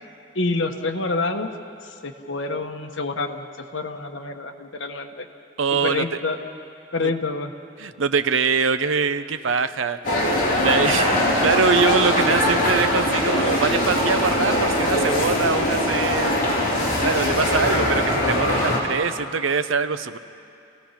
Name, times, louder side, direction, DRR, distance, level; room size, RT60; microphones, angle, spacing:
voice 1, 0.3-1.5 1.8-3.5 3.7-5.3 5.7-6.4 6.9-7.5, left 3 dB, 75° left, 5 dB, 1.4 m, -27 dB
voice 2, 5.6-6.1 7.0-7.1 7.8-16.3 17.0-20.2, right 5 dB, 85° right, 12 dB, 0.8 m, -23 dB
sound 1, 10.0-18.8, left 1 dB, 45° left, 3.7 m, -21 dB
sound 2, 10.6-16.4, right 1 dB, 50° right, 3.5 m, -38 dB
28.0 x 17.0 x 5.8 m, 2.6 s
head